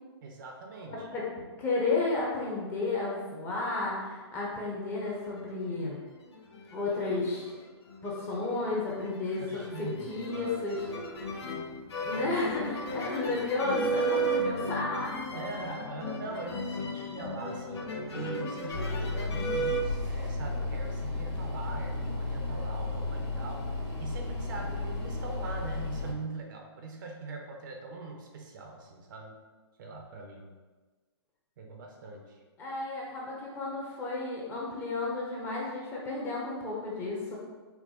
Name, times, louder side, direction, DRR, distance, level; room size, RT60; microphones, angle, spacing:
voice 1, 0.2-1.1 9.4-10.6 10.9-11.0 12.9-13.4 15.3-17.8 18.1-23.7 24.0-29.4 29.8-30.5 31.6-32.4, right 3 dB, 45° right, 2 dB, 0.6 m, -42 dB
voice 2, 0.9-6.0 6.7-7.6 8.0-10.9 12.0-15.1 17.2-17.3 32.6-37.4, left 3 dB, 15° left, -4 dB, 0.7 m, -32 dB
sound 1, 5.1-5.9 6.3-19.8, right 1 dB, 70° left, 0.7 m, -35 dB
sound 2, 18.7-26.1, left 2 dB, 90° left, 1.4 m, -34 dB
4.6 x 2.1 x 3.8 m, 1.3 s
hypercardioid pair, 150°, 14 cm